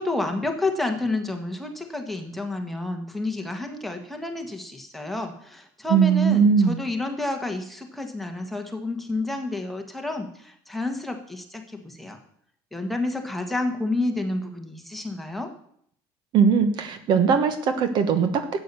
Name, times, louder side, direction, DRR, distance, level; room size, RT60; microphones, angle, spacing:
voice 1, 0.0-12.2 12.7-15.5, left 2 dB, ahead, 3 dB, 1.5 m, -30 dB
voice 2, 5.9-6.8 16.3-18.6, right 6 dB, 45° right, 10 dB, 1.1 m, -20 dB
12.5 x 8.6 x 6.8 m, 0.66 s
cardioid pair, 165°, 11 cm